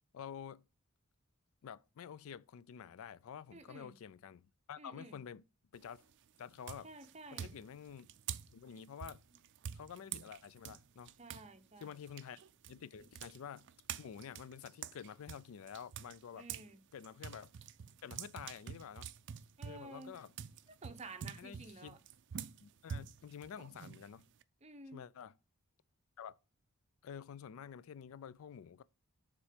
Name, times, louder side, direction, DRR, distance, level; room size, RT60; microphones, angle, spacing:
voice 1, 0.1-0.6 1.6-5.4 5.7-6.0 6.4-6.9 7.3-8.1 8.5-9.2 9.7-11.1 11.8-12.4 12.7-13.7 14.0-16.5 16.9-17.5 18.0-19.1 19.6-20.3 21.2-22.0 22.6-24.3 24.9-25.3 26.2-26.4 27.0-28.8, left 8 dB, 65° left, 0.3 m, -49 dB
voice 2, 3.5-4.0 4.8-5.2 6.8-7.6 11.2-11.9 16.3-16.8 19.6-20.2 20.8-22.0 24.6-25.0, right 2 dB, 30° right, 0.8 m, -52 dB
sound 1, 5.7-6.1 6.6-11.5 11.8-16.7 17.0-24.4, right 8 dB, 55° right, 0.4 m, -47 dB
7.1 x 3.7 x 5.1 m
head